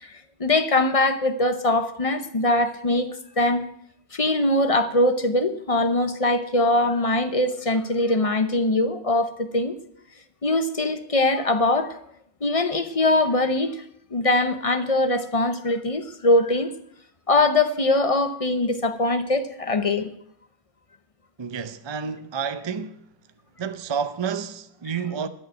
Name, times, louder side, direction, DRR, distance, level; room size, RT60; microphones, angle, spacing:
voice 1, 0.0-3.7 4.1-9.8 10.4-12.0 12.4-13.8 14.1-16.7 17.3-20.1, left 2 dB, 35° left, 0.8 m, -22 dB
voice 2, 21.4-23.0 23.6-25.3, right 6 dB, 30° right, 0.5 m, -30 dB
11.5 x 6.6 x 9.0 m
omnidirectional pair, 1.1 m